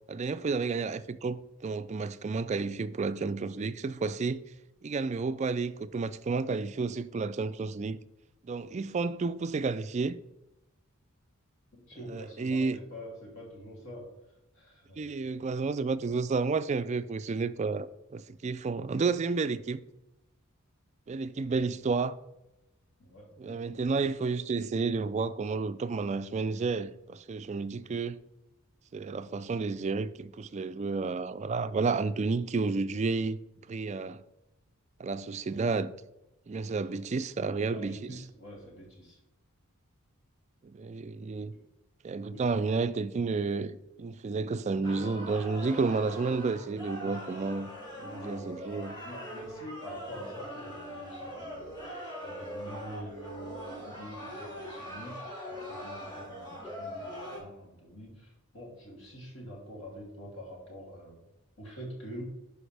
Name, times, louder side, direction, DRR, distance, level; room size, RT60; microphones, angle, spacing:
voice 1, 0.1-4.4 4.8-8.0 8.4-10.2 12.1-12.8 15.0-19.8 21.1-22.2 23.4-28.2 28.9-33.4 33.7-34.2 35.0-35.9 36.5-38.1 40.6-41.5 42.0-47.7 48.0-48.9, right 4 dB, 30° right, 0.3 m, -31 dB
voice 2, 11.7-14.1 14.5-15.3 21.1-21.7 23.0-23.8 24.1-24.2 36.8-37.0 37.6-39.2 41.5-41.6 42.3-42.4 48.1-48.6 49.0-51.9 52.2-55.2 55.5-61.2 61.6-62.3, equal, 60° left, 2.9 m, -46 dB
sound 1, 44.8-57.4, equal, 20° left, 2.8 m, -42 dB
11.5 x 5.0 x 3.4 m
head